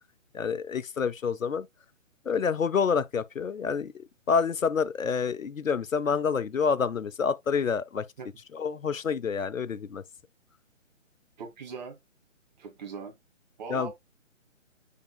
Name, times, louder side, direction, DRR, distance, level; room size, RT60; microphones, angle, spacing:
voice 1, 0.3-1.7 2.3-3.9 4.3-8.1 8.5-10.0 13.7-13.9, left 6 dB, 90° left, 0.7 m, -28 dB
voice 2, 11.4-12.0 12.6-13.2 13.6-13.9, right 5 dB, 35° right, 2.2 m, -40 dB
6.7 x 6.2 x 2.3 m
figure-of-eight pair, 140°, 39 cm